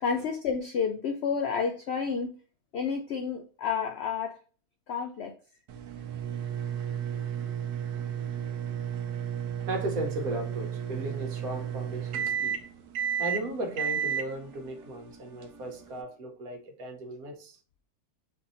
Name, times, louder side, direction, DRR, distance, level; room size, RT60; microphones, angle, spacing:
voice 1, 0.0-2.3 2.7-4.4 4.9-5.3, left 6 dB, 75° left, 0.6 m, -30 dB
sound 1, 5.7-16.0, right 8 dB, 85° right, 1.2 m, -33 dB
voice 2, 9.7-12.6 13.2-17.6, right 1 dB, 70° right, 1.4 m, -36 dB
4.5 x 2.7 x 4.0 m
omnidirectional pair, 1.6 m